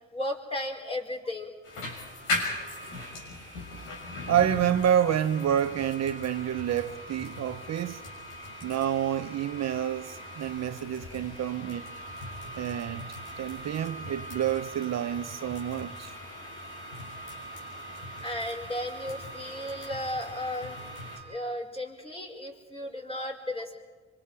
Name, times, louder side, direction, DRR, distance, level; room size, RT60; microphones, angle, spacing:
voice 1, 0.1-1.5 18.2-23.8, left 1 dB, 20° left, 4.8 m, -35 dB
sound 1, 1.6-21.2, left 1 dB, 90° left, 6.7 m, -39 dB
voice 2, 4.3-8.0 8.6-11.9 12.6-16.1, right 10 dB, 60° right, 0.9 m, -28 dB
25.5 x 25.5 x 4.9 m
cardioid pair, 90°, 30 cm